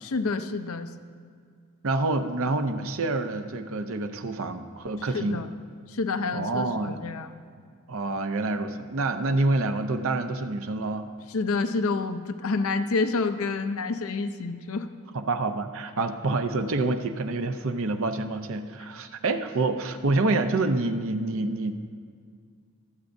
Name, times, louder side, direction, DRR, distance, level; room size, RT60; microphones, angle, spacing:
voice 1, 0.0-0.9 5.1-5.5 5.9-7.3 11.3-14.9, left 3 dB, 65° left, 8 dB, 0.6 m, -28 dB
voice 2, 1.8-5.4 6.3-7.0 7.9-11.1 15.1-21.7, right 2 dB, 65° right, 8 dB, 0.7 m, -27 dB
24.0 x 8.2 x 2.6 m, 2.1 s
head